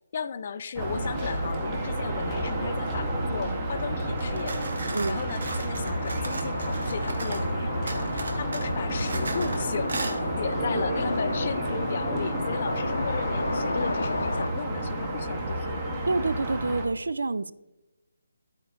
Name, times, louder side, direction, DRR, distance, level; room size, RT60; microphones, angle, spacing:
voice 1, 0.1-15.9, left 6 dB, 30° left, 0.3 m, -35 dB
sound 1, 0.8-16.9, right 1 dB, 10° right, 0.8 m, -30 dB
sound 2, 4.2-7.5 7.9-9.6 9.9-10.2, right 3 dB, 50° right, 1.1 m, -37 dB
sound 3, 5.7-14.5, left 2 dB, 85° left, 0.7 m, -33 dB
voice 2, 16.1-17.5, right 3 dB, 75° right, 0.4 m, -27 dB
11.5 x 4.4 x 3.8 m
hypercardioid pair, 180°, 0 cm